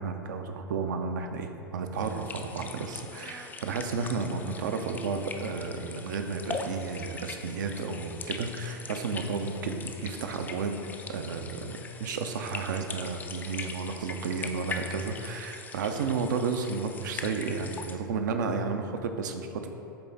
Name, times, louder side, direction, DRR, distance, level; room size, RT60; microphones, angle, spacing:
voice 1, 0.0-10.8 11.1-19.7, right 4 dB, 60° right, 6 dB, 0.5 m, -32 dB
sound 1, 2.0-18.0, left 4 dB, 15° left, 0.3 m, -41 dB
6.8 x 3.7 x 3.9 m, 2.7 s
figure-of-eight pair, 85°, 12 cm